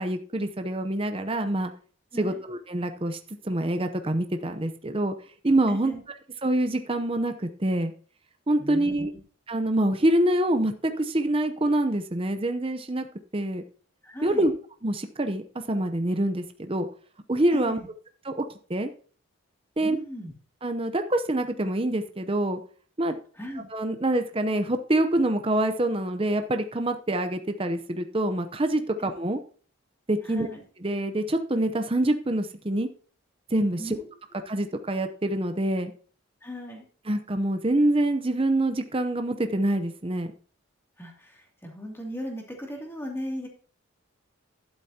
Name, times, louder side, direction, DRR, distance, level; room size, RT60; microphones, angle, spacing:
voice 1, 0.0-1.7 2.2-3.2 3.4-5.1 5.4-5.9 6.4-7.9 8.5-9.1 9.5-13.1 13.3-13.6 14.2-14.5 14.8-16.9 17.3-17.8 18.2-18.9 19.8-20.0 20.6-22.6 23.0-23.2 23.7-29.4 30.1-30.5 30.8-32.9 33.5-34.0 34.5-35.9 37.1-40.3, right 1 dB, 25° right, 7 dB, 0.7 m, -26 dB
voice 2, 5.7-6.0 8.6-9.0 14.0-14.5 17.5-17.9 19.8-20.3 23.4-23.6 29.0-29.1 30.2-30.6 33.8-34.1 36.4-36.9 41.0-43.5, equal, 10° left, 0 dB, 2.6 m, -37 dB
12.0 x 11.5 x 2.9 m, 0.43 s
head